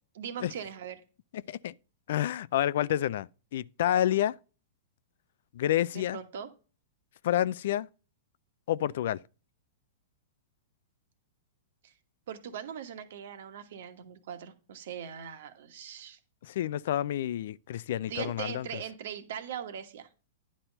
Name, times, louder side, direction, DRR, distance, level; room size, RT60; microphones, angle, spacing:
voice 1, 0.1-1.0 5.9-6.5 11.8-11.9 12.3-16.2 18.1-20.1, right 8 dB, 70° right, 1.4 m, -40 dB
voice 2, 2.1-4.4 5.5-6.2 7.2-7.9 8.7-9.2 16.4-18.7, left 12 dB, 65° left, 0.3 m, -29 dB
10.0 x 4.3 x 5.2 m
hypercardioid pair, 130°, 0 cm